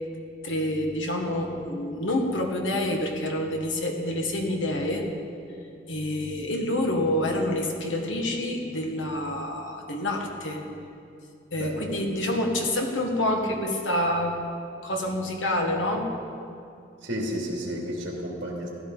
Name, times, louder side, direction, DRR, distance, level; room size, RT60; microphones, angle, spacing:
voice 1, 0.4-5.0 5.9-10.6 11.5-14.4 14.8-16.1, left 1 dB, 85° left, 2 dB, 1.6 m, -27 dB
voice 2, 11.6-11.9 17.0-18.7, equal, 65° right, -3 dB, 2.5 m, -32 dB
16.0 x 12.5 x 4.0 m, 2.5 s
head